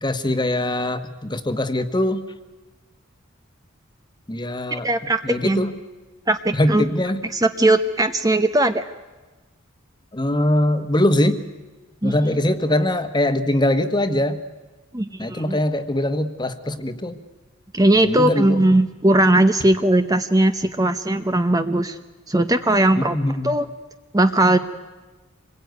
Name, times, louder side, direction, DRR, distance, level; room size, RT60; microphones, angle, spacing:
voice 1, 0.0-2.2 4.3-4.9 5.2-5.7 6.5-7.3 10.1-11.4 12.0-14.4 15.2-17.2 18.0-18.6 23.0-23.5, left 1 dB, 20° left, 9 dB, 1.4 m, -22 dB
voice 2, 4.7-5.6 6.3-6.9 7.3-8.9 12.0-12.1 14.9-15.6 17.7-22.0 22.3-23.2 23.4-23.7 24.1-24.6, right 1 dB, 15° right, 9 dB, 0.8 m, -19 dB
26.5 x 21.5 x 9.4 m, 1.2 s
head